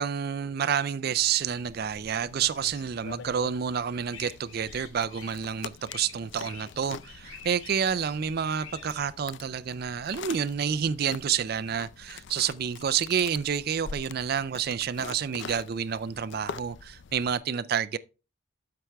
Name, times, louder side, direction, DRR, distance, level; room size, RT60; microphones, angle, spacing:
voice 1, 0.0-18.0, right 7 dB, 50° right, 0.4 m, -29 dB
sound 1, 1.2-17.4, left 6 dB, 60° left, 0.4 m, -45 dB
sound 2, 4.1-9.1, left 6 dB, 80° left, 3.1 m, -48 dB
12.5 x 5.9 x 3.4 m
head